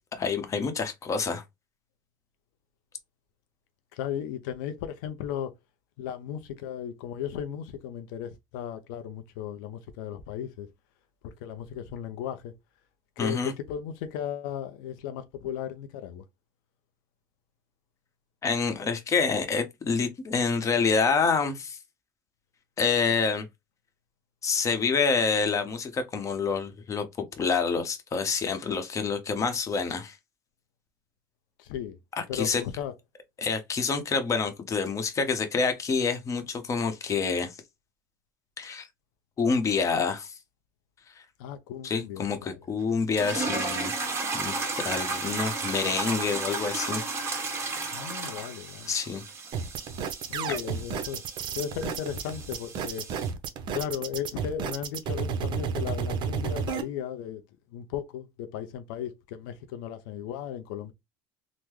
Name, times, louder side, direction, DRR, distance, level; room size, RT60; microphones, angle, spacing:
voice 1, 0.0-1.4 13.2-13.5 18.4-21.8 22.8-23.5 24.4-27.0 27.4-30.2 32.2-32.6 33.4-37.5 38.6-38.9 39.4-40.3 41.8-43.9 44.3-47.0 48.9-49.2, left 5 dB, 30° left, 0.8 m, -27 dB
voice 2, 3.9-5.5 6.0-10.7 11.4-12.5 13.2-16.2 31.6-32.0 32.3-32.9 41.4-42.6 47.9-48.9 50.3-51.2 51.5-53.1 53.7-57.4 57.7-60.9, left 9 dB, 80° left, 0.5 m, -36 dB
sound 1, 43.1-53.3, right 3 dB, 25° right, 1.3 m, -34 dB
sound 2, 49.5-56.8, right 6 dB, 45° right, 0.7 m, -31 dB
3.6 x 2.0 x 3.0 m
supercardioid pair, 115°, 11 cm